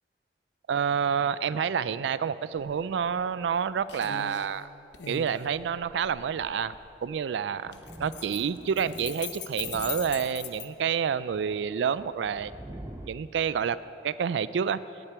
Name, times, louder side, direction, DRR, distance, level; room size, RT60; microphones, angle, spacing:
voice 1, 0.7-4.7 5.1-12.5 13.1-13.8 14.0-14.8, right 7 dB, 85° right, 16 dB, 0.3 m, -28 dB
sound 1, 2.5-2.7 3.1-3.6 3.9-4.5 4.9-6.9 7.6-10.7, left 9 dB, 85° left, 0.8 m, -40 dB
Thunder, 7.6-10.6 11.1-13.1, right 1 dB, 15° right, 0.5 m, -45 dB
8.9 x 8.0 x 9.3 m, 2.8 s
head